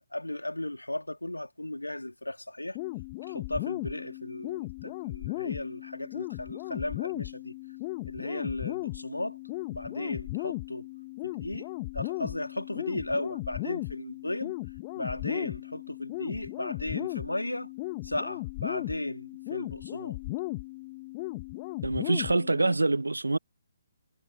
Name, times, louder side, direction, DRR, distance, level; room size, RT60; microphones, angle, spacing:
voice 1, 0.0-2.8 3.3-7.5 8.0-9.4 9.7-10.9 11.2-11.7 11.9-14.5 15.0-17.7 18.0-20.2, left 1 dB, 85° left, 2.9 m, -35 dB
sound 1, 2.7-22.7, left 22 dB, 30° left, 1.5 m, -36 dB
voice 2, 21.8-23.4, right 2 dB, 80° right, 0.8 m, -25 dB
figure-of-eight pair, 135°, 0 cm